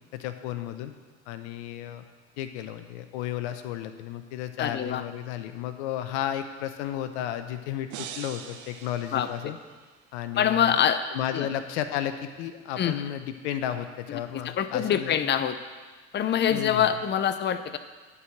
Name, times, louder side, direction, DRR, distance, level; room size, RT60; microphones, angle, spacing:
voice 1, 0.1-0.9 1.3-2.0 2.4-9.6 10.1-10.7 11.1-15.2 16.5-16.9, left 11 dB, 80° left, 9 dB, 0.8 m, -33 dB
voice 2, 4.6-5.0 9.1-9.5 10.4-11.0 11.3-11.5 12.8-12.9 14.1-14.2 14.4-15.6 16.1-17.8, left 9 dB, 30° left, 11 dB, 0.6 m, -25 dB
sound 1, 7.9-10.0, right 8 dB, 60° right, 0.9 m, -43 dB
11.0 x 4.8 x 7.2 m, 1.3 s
hypercardioid pair, 75°, 34 cm